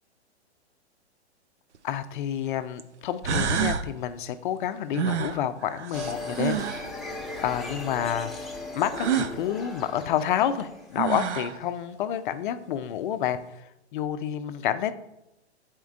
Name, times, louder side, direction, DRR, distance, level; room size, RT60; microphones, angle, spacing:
sound 1, 1.7-1.8 2.8-2.9 3.2-3.9 4.9-6.9 8.9-9.4 10.6-10.7 11.0-11.6, right 8 dB, 85° right, 0.5 m, -28 dB
voice 1, 1.8-6.6 7.4-8.5 8.7-13.4 13.9-14.9, left 10 dB, 45° left, 11 dB, 0.5 m, -29 dB
sound 2, 5.9-11.5, left 2 dB, ahead, 0.7 m, -37 dB
9.0 x 4.3 x 2.4 m, 0.91 s
hypercardioid pair, 120°, 34 cm